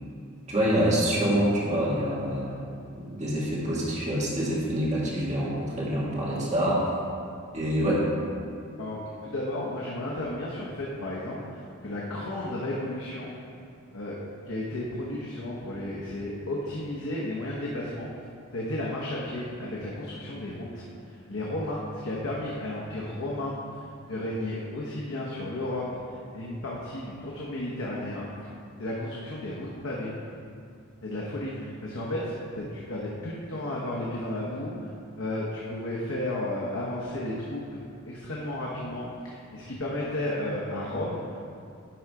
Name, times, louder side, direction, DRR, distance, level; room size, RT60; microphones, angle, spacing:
voice 1, 0.5-2.6 2.9-6.9 7.5-8.1, equal, 35° right, -6 dB, 1.9 m, -26 dB
voice 2, 8.8-13.3 13.9-14.2 14.5-18.1 18.5-23.5 24.1-28.3 28.8-30.1 31.0-34.9 35.2-41.4, left 1 dB, 65° left, -4 dB, 1.0 m, -33 dB
10.5 x 3.9 x 4.7 m, 2.5 s
head